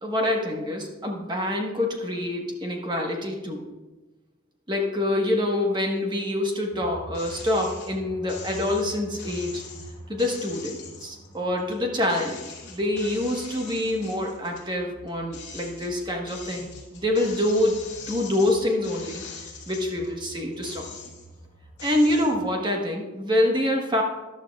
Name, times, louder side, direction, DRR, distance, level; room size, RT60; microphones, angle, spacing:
voice 1, 0.0-3.6 4.7-9.6 10.1-20.9 21.8-24.0, left 1 dB, 20° right, 1 dB, 1.2 m, -26 dB
sound 1, 6.7-22.5, right 1 dB, 20° left, 0.8 m, -47 dB
sound 2, 7.1-7.9 8.3-11.8 12.1-14.7 15.1-20.1 20.5-21.4 21.8-22.3, left 5 dB, 50° left, 2.6 m, -42 dB
13.5 x 11.0 x 2.4 m, 1.1 s
head